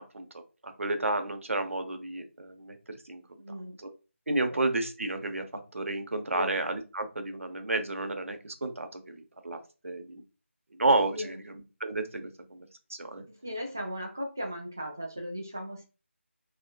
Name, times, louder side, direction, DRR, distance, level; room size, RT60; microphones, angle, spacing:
voice 1, 0.6-3.2 3.8-3.9 4.3-10.2 10.7-11.4 11.8-13.2, right 2 dB, 80° right, 7 dB, 0.7 m, -31 dB
voice 2, 3.4-3.8 4.5-4.6 6.3-6.5 11.1-11.3 13.3-15.8, equal, 15° right, 1 dB, 0.3 m, -37 dB
3.5 x 3.5 x 2.2 m, 0.33 s
figure-of-eight pair, 175°, 7 cm